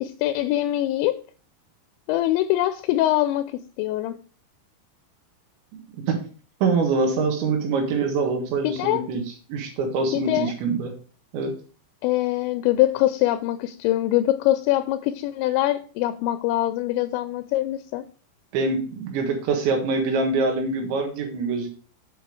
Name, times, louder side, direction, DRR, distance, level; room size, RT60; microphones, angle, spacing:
voice 1, 0.0-1.2 2.1-4.2 8.6-9.0 10.1-10.5 12.0-18.0, left 14 dB, 85° left, 10 dB, 2.8 m, -23 dB
voice 2, 6.6-9.2 9.5-10.9 11.3-11.5 18.5-21.7, right 4 dB, 80° right, 3 dB, 3.9 m, -24 dB
8.6 x 5.3 x 4.8 m, 0.41 s
omnidirectional pair, 5.3 m